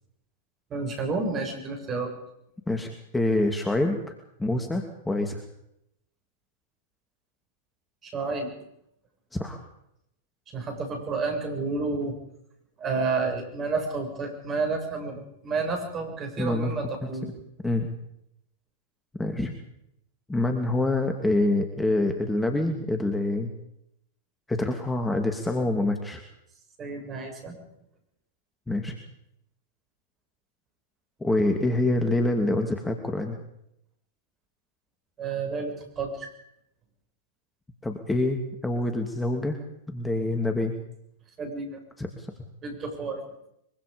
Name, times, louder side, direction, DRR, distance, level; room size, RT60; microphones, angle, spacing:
voice 1, 0.7-2.1 8.0-8.5 10.5-12.2 12.8-17.3 26.8-27.6 35.2-36.3 41.4-41.8 42.6-43.2, right 4 dB, 30° right, 4 dB, 6.9 m, -30 dB
voice 2, 2.7-4.0 4.4-5.4 9.3-9.6 16.4-16.7 17.6-17.9 19.2-19.5 20.3-23.5 24.5-26.2 28.7-28.9 31.2-33.4 37.8-39.6 39.9-40.8 42.0-42.3, left 2 dB, 10° left, 4 dB, 2.5 m, -26 dB
24.0 x 23.5 x 5.3 m, 0.80 s
hypercardioid pair, 105°, 0 cm